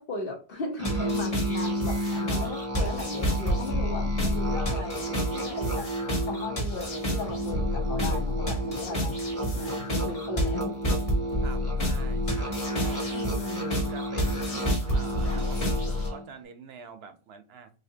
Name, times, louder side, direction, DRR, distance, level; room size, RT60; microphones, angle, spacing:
voice 1, 0.0-5.9 6.3-9.2 9.5-10.7 13.1-13.8, left 2 dB, 60° left, 2 dB, 1.1 m, -37 dB
sound 1, 0.8-16.1, equal, 35° left, 1.0 m, -30 dB
Musical instrument, 0.8-16.3, equal, 15° right, 0.8 m, -33 dB
voice 2, 11.4-13.1 13.6-17.7, right 6 dB, 75° right, 9 dB, 0.8 m, -45 dB
4.2 x 2.7 x 2.7 m, 0.35 s
omnidirectional pair, 1.1 m